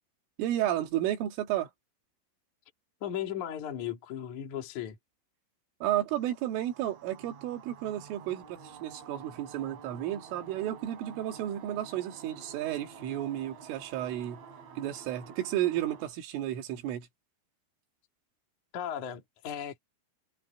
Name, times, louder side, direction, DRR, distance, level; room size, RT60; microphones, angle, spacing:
voice 1, 0.4-1.7 5.8-14.4 14.8-17.1, right 12 dB, 75° right, 4.4 m, -32 dB
voice 2, 3.0-5.0 18.7-19.8, left 10 dB, 45° left, 3.2 m, -36 dB
sound 1, 6.1-16.1, right 6 dB, 35° right, 4.4 m, -50 dB
omnidirectional pair, 6.0 m